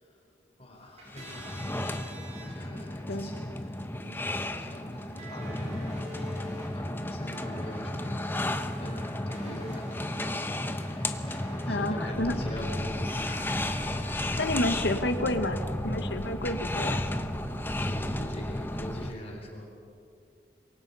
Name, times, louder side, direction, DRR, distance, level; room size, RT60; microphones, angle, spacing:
voice 1, 0.6-2.0 2.4-8.5 8.8-13.6 14.0-14.4 17.5-19.7, left 1 dB, 35° left, 0 dB, 4.3 m, -44 dB
sound 1, 0.7-16.0, equal, 40° right, 6.9 m, -47 dB
sound 2, 1.1-19.1, left 1 dB, 10° left, 0.9 m, -33 dB
voice 2, 11.7-12.4 14.4-17.0, left 1 dB, 80° left, 8 dB, 1.5 m, -30 dB
sound 3, 12.1-19.1, equal, 10° right, 1.4 m, -40 dB
27.0 x 23.0 x 5.6 m, 2.5 s
head